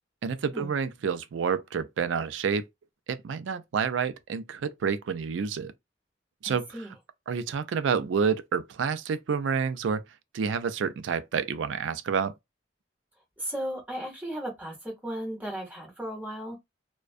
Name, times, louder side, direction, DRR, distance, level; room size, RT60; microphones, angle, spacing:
voice 1, 0.2-2.7 3.1-5.7 6.4-6.7 7.3-10.0 10.3-12.3, right 6 dB, 85° right, 0.4 m, -29 dB
voice 2, 6.4-6.9 13.4-16.6, right 1 dB, 10° right, 1.1 m, -36 dB
2.4 x 2.2 x 2.5 m
head